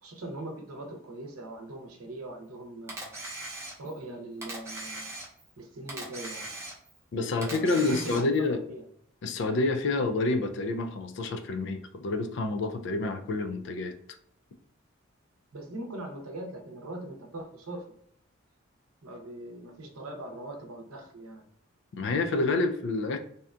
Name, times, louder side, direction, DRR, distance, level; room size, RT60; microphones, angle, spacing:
voice 1, 0.0-3.1 3.8-5.1 5.6-6.6 7.4-8.8 15.5-17.9 19.0-21.4, right 1 dB, 90° right, 2 dB, 0.6 m, -41 dB
Camera, 2.9-4.0 4.4-5.5 5.9-7.0 7.4-8.5, right 2 dB, 10° right, 0.5 m, -40 dB
voice 2, 7.1-8.6 9.2-13.9 22.0-23.2, left 3 dB, 55° left, 7 dB, 0.3 m, -28 dB
2.7 x 2.2 x 2.4 m, 0.67 s
head